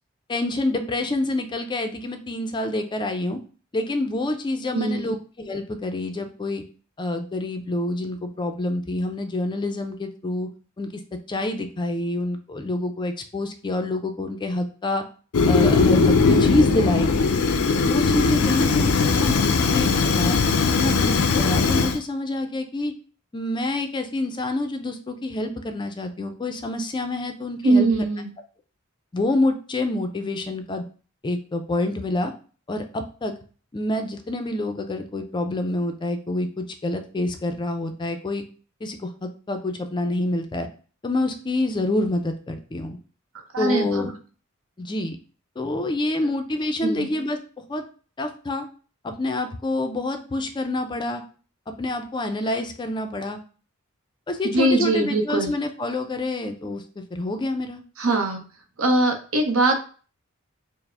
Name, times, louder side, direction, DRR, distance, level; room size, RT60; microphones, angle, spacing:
voice 1, 0.3-3.4 3.7-6.6 7.0-10.5 10.8-10.9 11.3-15.0 15.5-17.1 17.8-20.4 20.7-22.9 23.3-27.9 29.1-30.8 31.2-32.3 32.7-33.3 33.7-38.5 38.8-40.7 41.0-43.0 43.6-44.1 44.8-45.2 45.6-47.4 47.7-47.8 48.2-48.7 49.0-51.2 51.8-53.4 54.3-57.8, left 2 dB, 20° left, 7 dB, 0.4 m, -27 dB
voice 2, 4.7-5.2 27.6-28.3 43.5-44.0 46.8-47.1 54.4-55.5 58.0-58.4 58.8-59.8, right 2 dB, 70° right, 5 dB, 0.7 m, -21 dB
Fire, 15.3-22.0, left 4 dB, 90° left, 0.4 m, -19 dB
4.6 x 2.0 x 3.4 m, 0.39 s
head